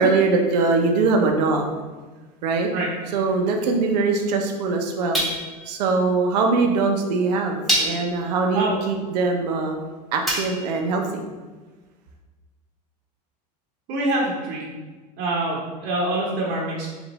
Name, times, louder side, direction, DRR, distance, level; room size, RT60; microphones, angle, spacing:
voice 1, 0.0-1.7 2.4-2.7 3.1-5.2 5.7-9.8 10.1-11.2, right 3 dB, 80° right, 3 dB, 0.7 m, -22 dB
sound 1, 2.6-2.7 5.1-5.7 6.8-6.9 7.7-8.2 10.3-10.8, equal, ahead, 1.0 m, -25 dB
voice 2, 2.7-3.2 8.5-8.8 13.9-14.7 15.2-16.9, right 2 dB, 50° right, -3 dB, 0.8 m, -25 dB
5.0 x 2.5 x 3.1 m, 1.3 s
supercardioid pair, 120°, 21 cm